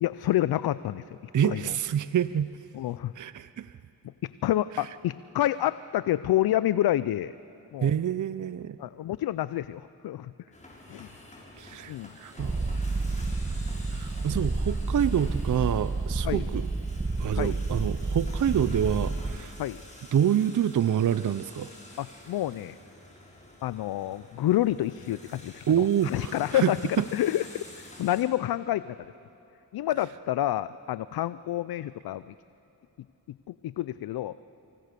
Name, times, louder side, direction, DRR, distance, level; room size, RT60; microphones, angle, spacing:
voice 1, 0.0-1.2 1.4-1.8 2.7-3.1 4.2-7.3 7.7-7.9 8.8-10.3 10.9-11.1 11.9-12.1 16.2-16.4 17.3-17.6 19.6-19.8 22.0-22.7 23.6-29.0 29.7-32.3 33.5-34.4, left 13 dB, 75° left, 16 dB, 0.5 m, -28 dB
voice 2, 1.3-2.5 3.2-3.7 7.8-8.8 11.6-12.6 13.9-16.7 17.2-19.6 20.1-21.7 25.7-26.7 27.0-27.1, right 9 dB, 55° right, 14 dB, 0.7 m, -27 dB
sound 1, 10.5-28.2, left 1 dB, 20° left, 6.8 m, -49 dB
Purr, 12.4-19.4, right 3 dB, 20° right, 1.2 m, -30 dB
26.5 x 25.5 x 6.8 m, 2.8 s
cardioid pair, 55°, 37 cm